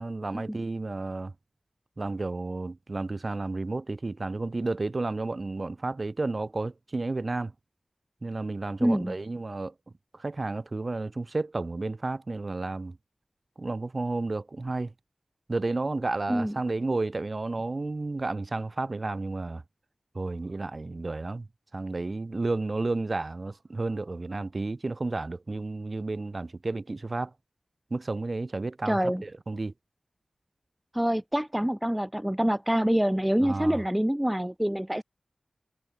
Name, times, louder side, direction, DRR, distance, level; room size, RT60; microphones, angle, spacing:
voice 1, 0.0-1.3 2.0-7.5 8.2-9.7 10.1-13.0 13.6-14.9 15.5-19.6 20.2-21.5 21.7-27.3 27.9-29.7 33.4-33.8, right 3 dB, 45° right, 1.9 m, -32 dB
voice 2, 8.8-9.1 16.3-16.5 28.9-29.2 30.9-35.0, equal, 5° right, 0.8 m, -26 dB
wide cardioid pair, 65°, 0 cm